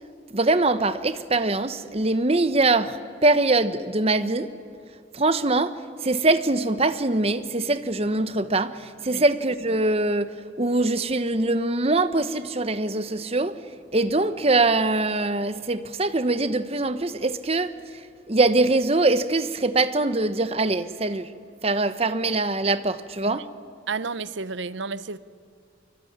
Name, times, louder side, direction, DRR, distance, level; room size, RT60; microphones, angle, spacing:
voice 1, 0.3-3.0 3.2-4.5 5.1-5.8 6.0-13.6 13.9-17.7 18.3-21.3 21.6-23.5, right 2 dB, 30° right, 1.0 m, -23 dB
voice 2, 23.9-25.2, right 4 dB, 65° right, 0.8 m, -31 dB
24.5 x 23.5 x 9.5 m
head